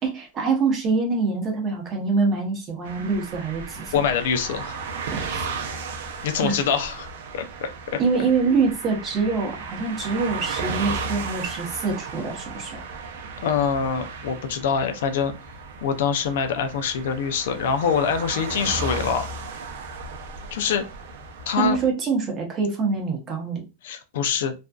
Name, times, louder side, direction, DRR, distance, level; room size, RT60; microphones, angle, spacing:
voice 1, 0.0-4.0 5.1-5.4 6.4-6.5 8.0-12.8 21.6-23.6, right 4 dB, 25° right, 1 dB, 0.8 m, -25 dB
sound 1, 2.8-21.9, right 4 dB, 70° right, 0.5 m, -35 dB
voice 2, 3.9-4.8 6.2-7.1 7.3-8.0 13.4-15.3 15.8-19.3 20.5-20.9 21.5-21.8 23.8-24.5, left 7 dB, 75° left, 8 dB, 0.4 m, -24 dB
2.5 x 2.3 x 2.2 m, 0.28 s
supercardioid pair, 150°, 0 cm